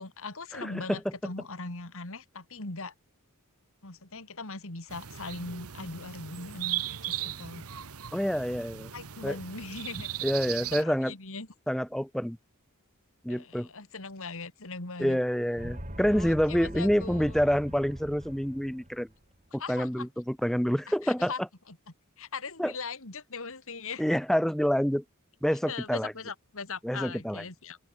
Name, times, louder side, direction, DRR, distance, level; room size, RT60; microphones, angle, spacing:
voice 1, 0.0-2.9 3.8-7.6 8.9-10.1 10.7-11.5 13.3-15.2 16.1-17.3 19.6-20.1 20.9-21.4 21.7-21.8 22.2-24.0 25.7-27.8, left 3 dB, 65° left, 3.5 m, -40 dB
voice 2, 0.5-1.0 8.1-8.9 9.2-9.4 10.2-11.1 11.7-12.4 13.2-13.7 15.0-19.1 19.5-21.3 22.6-22.7 24.0-25.0 25.4-26.1 26.8-27.4, equal, ahead, 0.8 m, -27 dB
sound 1, 4.9-10.8, right 11 dB, 75° right, 1.4 m, -37 dB
sound 2, 15.6-19.1, equal, 35° right, 7.9 m, -41 dB
head